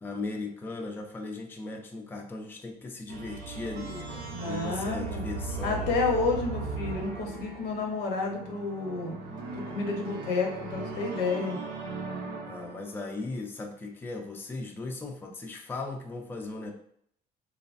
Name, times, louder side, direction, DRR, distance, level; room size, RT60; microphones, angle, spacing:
voice 1, 0.0-5.9 12.5-16.7, left 3 dB, 10° left, 2 dB, 0.4 m, -37 dB
sound 1, 3.1-13.1, right 4 dB, 90° right, 0.6 m, -38 dB
voice 2, 4.3-5.2 5.6-9.1 9.5-11.6, left 3 dB, 80° left, 1 dB, 0.8 m, -30 dB
3.1 x 2.1 x 2.5 m, 0.66 s
cardioid pair, 110°, 17 cm